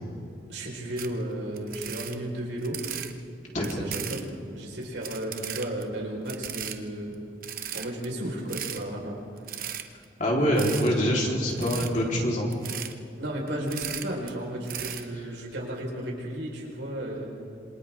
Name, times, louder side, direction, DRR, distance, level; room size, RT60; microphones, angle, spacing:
voice 1, 0.5-2.8 3.6-7.1 7.7-9.2 13.2-17.4, right 1 dB, 80° right, -2 dB, 4.9 m, -34 dB
sound 1, 1.0-1.1 1.6-3.1 3.6-4.3 4.8-5.8 6.3-6.8 7.1-7.2 7.4-8.1 8.5-8.8 9.4-10.0 10.6-10.9 11.5-11.9 12.5-12.9 13.5-14.3 14.6-15.0, right 10 dB, 50° right, 1.0 m, -36 dB
voice 2, 10.2-12.5, equal, 40° left, -3 dB, 3.9 m, -25 dB
27.0 x 25.5 x 3.7 m, 2.5 s
head